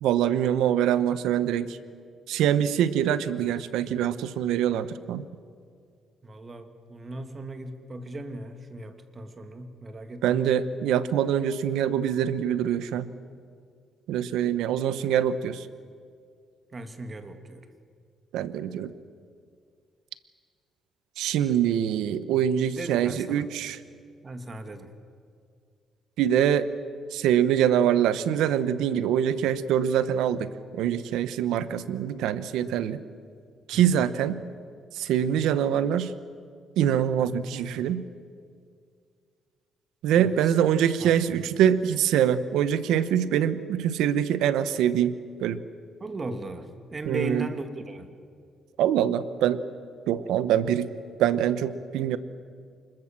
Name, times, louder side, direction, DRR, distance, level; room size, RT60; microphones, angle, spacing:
voice 1, 0.0-1.8 2.3-5.2 10.2-13.1 14.1-15.7 18.3-18.9 21.2-23.8 26.2-26.7 27.1-33.0 33.7-34.4 34.9-36.1 36.8-38.0 40.0-45.6 47.1-47.5 48.8-49.6 50.1-50.9 51.2-52.2, right 10 dB, 90° right, 14 dB, 0.9 m, -24 dB
voice 2, 3.3-4.0 6.2-10.5 16.7-17.7 22.7-23.5 24.2-24.9 33.7-34.1 40.2-40.5 41.0-41.5 46.0-48.1, right 2 dB, 35° right, 8 dB, 2.3 m, -38 dB
25.5 x 21.5 x 7.4 m, 2.2 s
cardioid pair, 90°, 0 cm